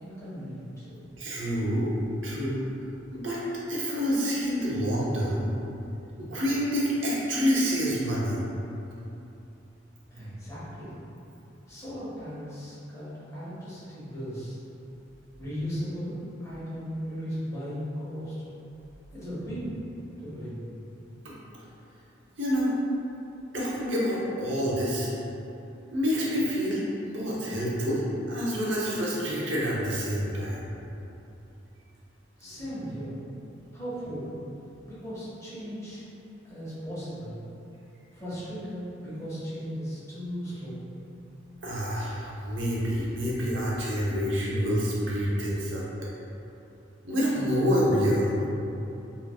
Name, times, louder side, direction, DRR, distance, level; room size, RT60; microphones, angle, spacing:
voice 1, 0.0-0.9 10.1-10.9 11.7-14.6 15.4-16.1 16.4-18.3 19.1-19.8 20.2-20.7 32.4-33.2 33.7-34.3 34.9-36.0 36.5-37.4 38.1-40.8, equal, 15° left, -12 dB, 1.4 m, -36 dB
voice 2, 0.9-1.9 2.2-2.6 3.1-3.4 3.7-5.5 6.2-8.4 21.2-21.3 22.4-22.7 23.5-25.1 25.9-28.0 28.3-30.7 41.6-45.8 47.0-48.4, equal, 90° right, -6 dB, 0.9 m, -27 dB
4.7 x 3.2 x 2.3 m, 2.9 s
head